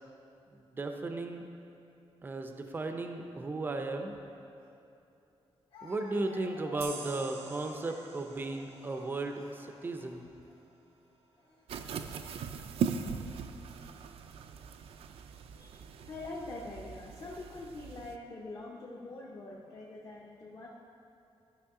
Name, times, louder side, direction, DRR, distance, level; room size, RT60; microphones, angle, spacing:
voice 1, 0.5-1.5 2.2-4.1 5.8-10.3, right 2 dB, 20° right, 5 dB, 0.5 m, -35 dB
Speech, 4.6-4.7 5.7-10.6 11.4-11.6 12.6-13.2, left 2 dB, 60° left, 1.0 m, -54 dB
sound 1, 6.8-10.1, right 5 dB, 90° right, 0.9 m, -49 dB
sound 2, 11.7-18.2, right 7 dB, 75° right, 0.4 m, -39 dB
voice 2, 15.5-20.7, left 2 dB, 35° left, -4 dB, 0.7 m, -44 dB
12.5 x 6.1 x 3.7 m, 2.7 s
wide cardioid pair, 175°, 10 cm